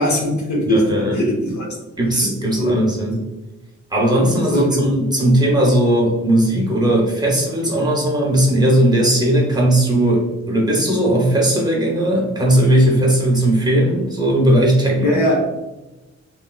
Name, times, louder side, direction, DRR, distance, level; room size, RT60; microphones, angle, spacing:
voice 1, 0.0-1.7 2.2-2.3 2.6-2.8 4.5-4.9 15.0-15.4, equal, 85° left, -2 dB, 1.0 m, -20 dB
voice 2, 0.6-1.3 2.0-3.3 3.9-15.2, right 1 dB, 15° right, -3 dB, 0.7 m, -17 dB
3.0 x 3.0 x 2.3 m, 1.0 s
wide cardioid pair, 170°, 29 cm